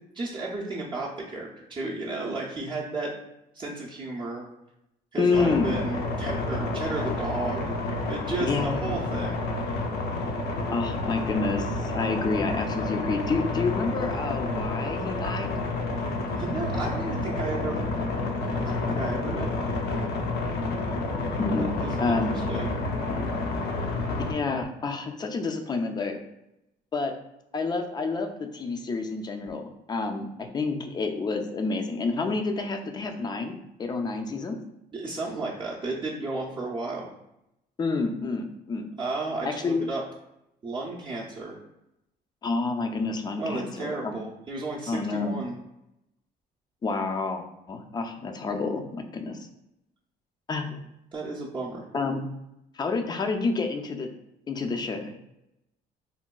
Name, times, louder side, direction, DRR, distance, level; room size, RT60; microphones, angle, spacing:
voice 1, 0.1-3.1 3.5-4.5 5.1-7.7 8.1-9.4 16.0-17.8 18.6-19.6 21.6-22.2 22.5-22.7 34.9-37.1 39.0-40.0 40.6-41.6 43.4-45.5 51.1-51.8, right 2 dB, 30° right, -5 dB, 0.5 m, -33 dB
voice 2, 5.2-5.7 8.4-8.9 10.7-15.5 21.4-21.7 22.0-22.4 24.3-26.2 26.9-27.1 27.5-34.6 37.8-38.9 39.4-39.8 42.4-44.2 44.9-45.4 46.8-49.5 50.5-50.7 51.9-52.3 52.7-54.1 54.5-55.1, left 3 dB, 25° left, 5 dB, 0.4 m, -29 dB
sound 1, 5.3-24.3, left 2 dB, 70° left, 0.6 m, -29 dB
3.9 x 2.2 x 2.2 m, 0.87 s
cardioid pair, 110°, 17 cm